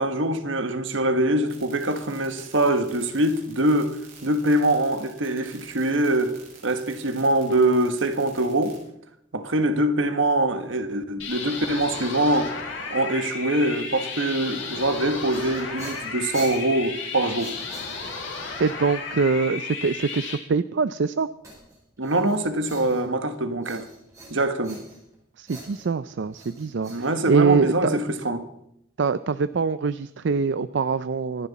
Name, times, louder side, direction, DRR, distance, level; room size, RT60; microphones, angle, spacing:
voice 1, 0.0-6.4 6.6-8.8 9.3-12.5 12.9-17.5 22.0-23.9 24.3-24.8 26.9-28.4, right 1 dB, 80° right, 1.5 m, -23 dB
sound 1, 1.5-8.8, right 5 dB, 50° right, 6.6 m, -49 dB
sound 2, 11.2-20.3, left 4 dB, 85° left, 4.5 m, -34 dB
sound 3, 15.2-18.4 21.4-23.3 23.6-25.1 25.5-27.7, right 2 dB, 15° right, 6.1 m, -44 dB
voice 2, 18.6-21.3 25.4-28.0 29.0-31.5, right 5 dB, 65° right, 0.4 m, -24 dB
25.5 x 11.0 x 4.2 m
head